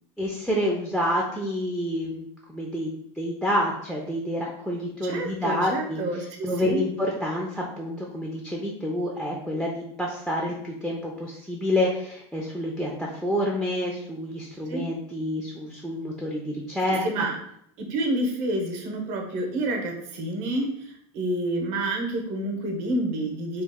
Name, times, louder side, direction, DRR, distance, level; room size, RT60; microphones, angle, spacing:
voice 1, 0.2-6.0 6.4-17.3, left 1 dB, ahead, -2 dB, 0.3 m, -28 dB
voice 2, 5.0-6.9 14.7-14.8 16.9-17.4 17.8-23.6, right 1 dB, 55° right, 3 dB, 0.8 m, -29 dB
3.0 x 2.0 x 3.4 m, 0.73 s
supercardioid pair, 135°, 15 cm